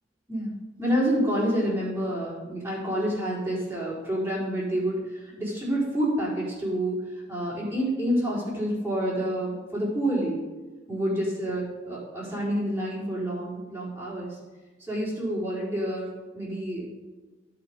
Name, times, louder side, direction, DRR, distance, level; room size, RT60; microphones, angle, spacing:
voice 1, 0.3-10.4 10.9-14.4 14.9-16.9, equal, 15° right, -7 dB, 4.2 m, -28 dB
15.5 x 5.9 x 5.1 m, 1.2 s
head